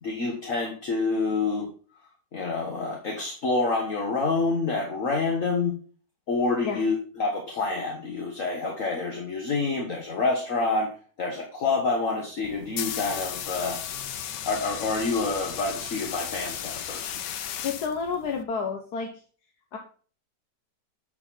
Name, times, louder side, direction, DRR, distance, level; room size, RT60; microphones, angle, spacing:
voice 1, 0.0-1.7 2.3-5.7 6.3-13.8 14.4-17.2, left 3 dB, 50° left, 1 dB, 1.6 m, -27 dB
sound 1, 12.4-18.4, left 9 dB, 85° left, 1.4 m, -35 dB
voice 2, 17.6-19.1 19.7-19.8, left 5 dB, 70° left, 3 dB, 1.5 m, -30 dB
9.4 x 5.0 x 4.0 m, 0.40 s
omnidirectional pair, 1.8 m